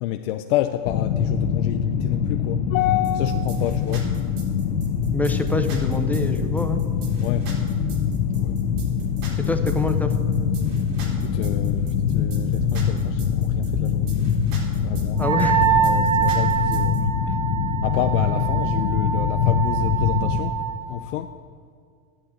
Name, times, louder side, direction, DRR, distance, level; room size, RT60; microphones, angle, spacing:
voice 1, 0.0-4.1 7.2-7.5 8.3-8.6 11.2-14.3 14.8-15.2 15.8-17.1 17.8-20.6 20.9-21.3, left 12 dB, 60° left, 7 dB, 0.7 m, -29 dB
sound 1, 0.8-20.4, left 7 dB, 80° left, 1.4 m, -24 dB
sound 2, 3.0-17.0, right 2 dB, 80° right, 4.0 m, -38 dB
voice 2, 5.1-6.8 9.5-10.1 15.2-15.7 17.3-17.4, left 2 dB, 5° left, 6 dB, 0.6 m, -26 dB
Wind instrument woodwind instrument, 15.2-20.8, right 9 dB, 40° right, 2.1 m, -25 dB
11.5 x 8.8 x 8.7 m, 2.1 s
supercardioid pair, 140°, 44 cm